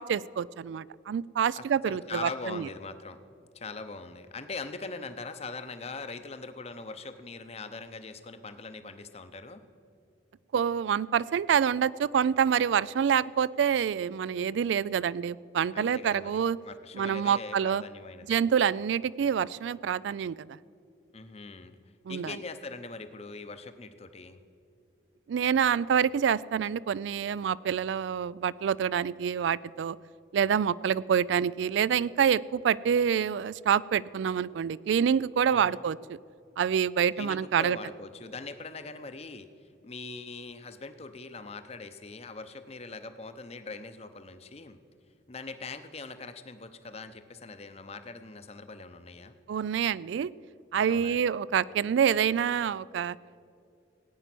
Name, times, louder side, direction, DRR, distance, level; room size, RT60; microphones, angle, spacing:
voice 1, 0.0-2.7 10.5-16.6 16.9-17.8 18.3-20.6 22.1-22.4 25.3-30.0 30.3-36.2 36.6-37.8 49.5-50.3 50.7-53.2, right 8 dB, 70° right, 21 dB, 0.3 m, -27 dB
voice 2, 1.6-3.2 3.5-9.6 15.7-18.4 21.1-21.8 22.1-24.4 35.5-35.8 37.2-39.5 39.8-44.8 45.3-49.4 50.9-51.2, left 3 dB, 35° left, 10 dB, 0.7 m, -42 dB
17.0 x 9.2 x 6.0 m, 2.5 s
head